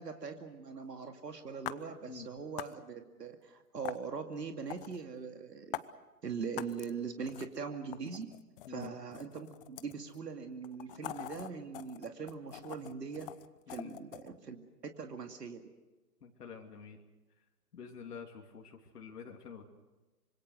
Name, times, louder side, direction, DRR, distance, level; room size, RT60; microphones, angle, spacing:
voice 1, 0.0-5.8 6.2-8.3 8.7-13.3 13.7-15.6, right 5 dB, 90° right, 5 dB, 2.5 m, -41 dB
sound 1, 1.7-1.8 2.6-2.7 3.8-4.0 4.7-5.0 5.7-5.9 6.6-6.9 7.3-7.6 7.9-10.2 10.6-14.3, left 14 dB, 35° left, 0.9 m, -43 dB
voice 2, 16.2-17.0 17.7-19.6, left 6 dB, 75° left, 2 dB, 3.0 m, -48 dB
26.0 x 25.5 x 6.5 m, 1.1 s
hypercardioid pair, 135°, 47 cm